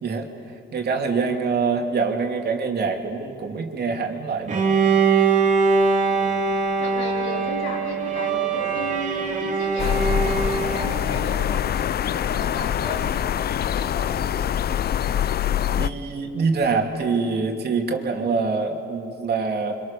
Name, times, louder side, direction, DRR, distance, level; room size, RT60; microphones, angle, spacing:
voice 1, 0.7-4.6 15.8-19.7, right 4 dB, 55° right, 2 dB, 3.0 m, -25 dB
Bowed string instrument, 4.5-11.2, right 5 dB, 40° right, 3.1 m, -22 dB
voice 2, 6.1-11.4 12.1-13.1 13.6-14.2, left 2 dB, 85° left, -2 dB, 4.8 m, -35 dB
sound 1, 9.8-15.9, left 9 dB, 55° left, 0.5 m, -24 dB
29.5 x 26.0 x 6.8 m, 2.6 s
cardioid pair, 90°, 20 cm